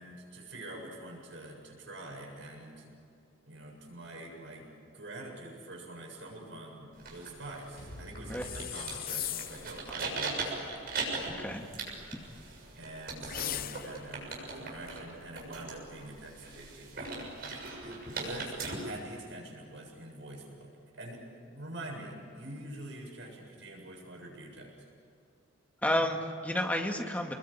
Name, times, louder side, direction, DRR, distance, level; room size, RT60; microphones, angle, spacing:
voice 1, 0.0-2.9 3.5-10.9 12.8-17.1 17.8-24.7, right 1 dB, 65° right, 0 dB, 7.6 m, -45 dB
sound 1, 6.9-18.7, right 3 dB, 50° right, 6.9 m, -40 dB
sound 2, 7.8-12.0, left 1 dB, 70° left, 4.2 m, -51 dB
sound 3, 8.4-9.7 13.2-14.1, left 11 dB, 45° left, 0.8 m, -38 dB
voice 2, 11.3-11.8 25.8-27.3, left 1 dB, 10° left, 2 dB, 2.1 m, -31 dB
29.0 x 21.5 x 8.8 m, 2.6 s
head